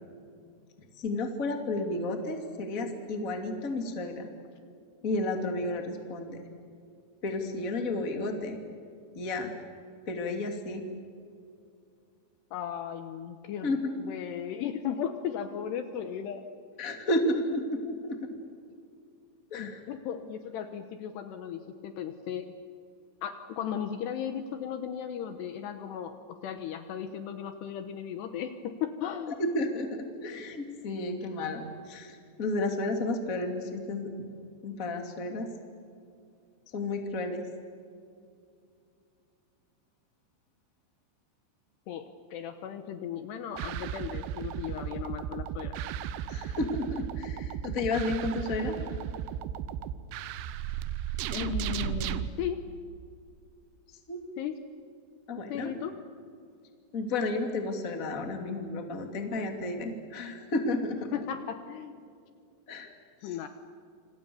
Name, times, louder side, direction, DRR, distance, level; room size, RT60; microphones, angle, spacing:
voice 1, 1.0-4.3 5.0-6.4 7.2-8.6 9.1-9.5 10.1-10.8 13.6-13.8 16.8-18.3 19.5-19.8 29.5-34.3 34.6-35.5 36.7-37.4 46.3-48.8 54.1-54.2 55.3-55.7 56.9-61.1 62.7-62.9 63.2-63.3, left 2 dB, 25° left, 5 dB, 2.1 m, -32 dB
voice 2, 12.5-16.5 19.5-22.5 23.2-26.1 26.4-29.4 41.9-45.7 51.3-52.6 54.4-54.6 55.5-56.0 61.1-62.0 63.2-63.5, left 9 dB, 70° left, 8 dB, 2.8 m, -36 dB
sound 1, 43.6-52.3, right 10 dB, 85° right, 3.3 m, -35 dB
28.0 x 26.5 x 7.0 m, 2.4 s
omnidirectional pair, 5.5 m